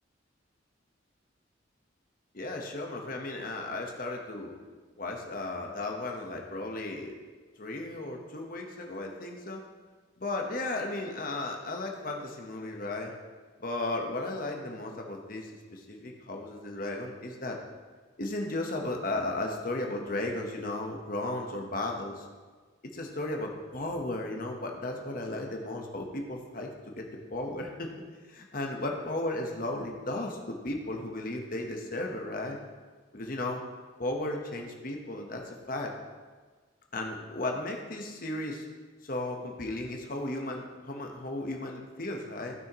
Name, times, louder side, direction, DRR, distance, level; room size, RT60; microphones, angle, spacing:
voice 1, 2.3-4.6 5.0-7.1 7.6-9.6 10.2-13.1 13.6-17.6 18.2-22.3 22.8-27.9 28.3-32.6 33.1-33.6 34.0-35.9 36.9-38.7 39.0-42.5, left 2 dB, 45° left, 1 dB, 1.2 m, -35 dB
15.0 x 6.4 x 3.1 m, 1.4 s
head